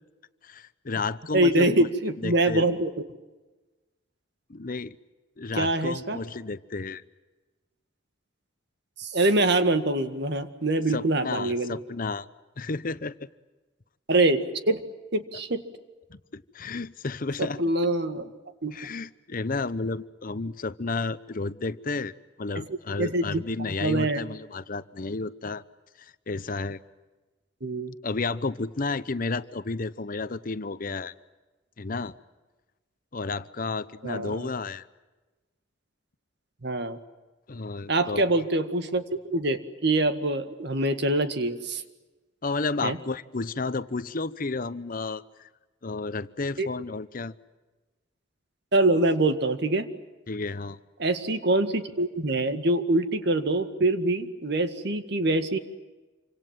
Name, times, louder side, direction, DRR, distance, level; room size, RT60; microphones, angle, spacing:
voice 1, 0.4-1.9 2.2-2.6 4.5-5.0 5.4-7.0 10.9-12.3 12.6-13.3 16.1-17.6 18.7-22.1 22.4-25.6 26.0-26.8 28.0-31.1 31.8-32.1 33.1-34.9 37.5-38.2 42.4-45.5 45.8-47.3 50.3-50.8, left 3 dB, 45° left, 15 dB, 0.8 m, -32 dB
voice 2, 1.3-2.9 5.5-6.2 9.0-11.8 14.1-14.8 15.1-15.6 17.4-18.3 18.6-18.8 23.0-23.4 23.8-24.2 27.6-27.9 34.0-34.5 36.6-37.0 37.9-39.0 39.3-41.8 42.8-43.0 46.6-46.7 48.7-49.9 51.0-55.6, right 2 dB, 60° right, 9 dB, 1.9 m, -24 dB
27.5 x 25.5 x 7.6 m, 1.2 s
head